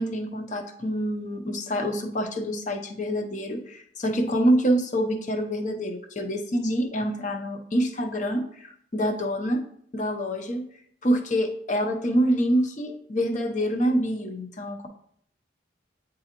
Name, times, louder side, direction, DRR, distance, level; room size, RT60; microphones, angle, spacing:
voice 1, 0.0-9.6 9.9-10.6 11.0-14.9, equal, 40° left, 5 dB, 0.7 m, -26 dB
9.0 x 3.8 x 2.9 m, 0.66 s
head